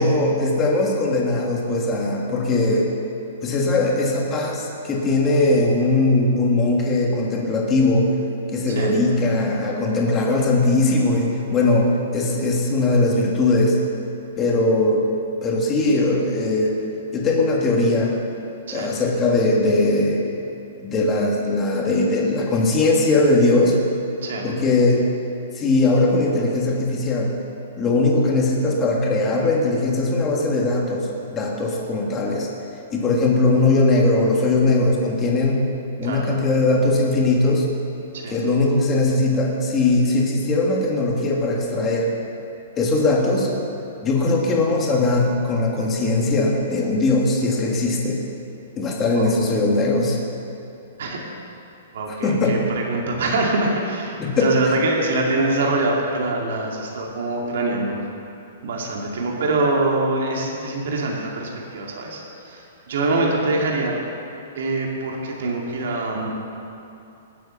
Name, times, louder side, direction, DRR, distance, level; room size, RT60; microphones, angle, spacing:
voice 1, 0.0-2.9 3.4-8.1 8.5-13.8 14.4-15.0 15.4-16.8 17.1-18.2 18.7-20.3 20.8-23.8 24.4-25.0 25.5-27.3 27.8-32.5 32.9-35.6 36.0-37.7 38.3-42.1 42.8-43.5 44.0-48.2 48.8-50.2 52.1-52.6 54.2-54.5, left 2 dB, 15° left, -1 dB, 1.5 m, -20 dB
voice 2, 51.9-58.0 58.6-62.2 62.5-62.6 62.9-64.0 64.5-66.3, right 2 dB, 55° right, -1 dB, 2.3 m, -24 dB
18.5 x 7.7 x 7.0 m, 2.7 s
hypercardioid pair, 180°, 0 cm